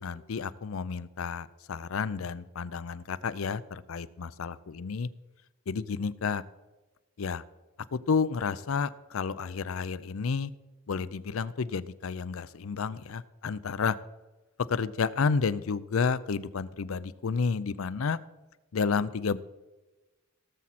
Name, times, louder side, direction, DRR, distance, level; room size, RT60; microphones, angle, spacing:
voice 1, 0.0-5.1 5.7-6.4 7.2-7.4 7.9-10.5 10.9-14.0 14.7-18.2 18.7-19.4, left 5 dB, 80° left, 17 dB, 0.5 m, -31 dB
17.0 x 7.5 x 4.2 m, 1.1 s
head